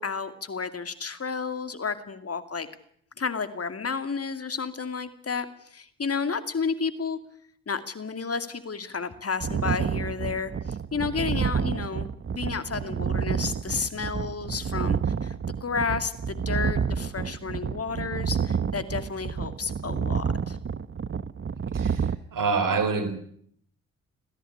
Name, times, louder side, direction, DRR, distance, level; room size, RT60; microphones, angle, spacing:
voice 1, 0.0-2.7 3.2-7.2 7.7-15.3 15.6-20.6, left 5 dB, 40° left, 2.4 m, -31 dB
sound 1, 9.4-22.2, right 6 dB, 35° right, 1.0 m, -29 dB
voice 2, 21.7-23.1, right 4 dB, 65° right, 4.3 m, -26 dB
21.5 x 15.5 x 9.9 m
hypercardioid pair, 45°, 35 cm